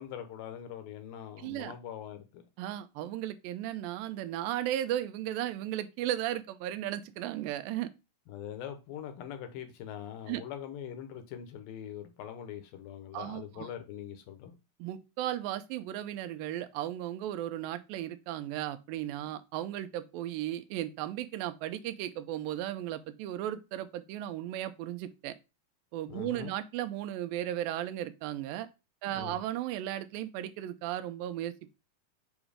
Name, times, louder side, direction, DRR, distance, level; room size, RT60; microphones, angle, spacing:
voice 1, 0.0-2.4 8.3-14.5 26.1-26.5 29.1-29.4, left 9 dB, 75° left, 2.7 m, -42 dB
voice 2, 1.4-1.7 2.6-7.9 10.3-10.4 13.1-13.7 14.8-25.3 25.9-28.7 29.0-31.7, right 12 dB, 80° right, 2.2 m, -35 dB
7.1 x 3.0 x 4.9 m
omnidirectional pair, 4.2 m